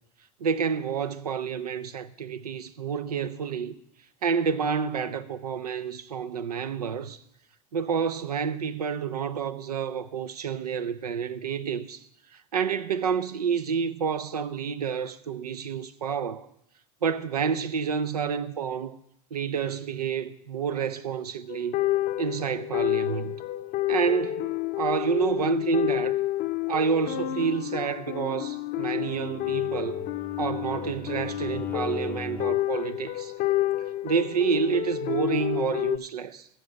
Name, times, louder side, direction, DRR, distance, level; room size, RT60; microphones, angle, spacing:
voice 1, 0.4-3.8 4.2-7.2 7.7-12.0 12.5-16.5 17.0-19.0 19.3-21.8 22.2-23.4 23.9-24.5 24.8-26.2 26.7-30.1 30.4-33.3 34.0-36.5, right 6 dB, 85° right, 0.7 m, -29 dB
sound 1, 21.5-36.0, left 15 dB, 45° left, 0.6 m, -29 dB
Bowed string instrument, 29.1-32.7, left 4 dB, 10° left, 0.3 m, -40 dB
14.0 x 8.0 x 5.1 m
hypercardioid pair, 85°, 20 cm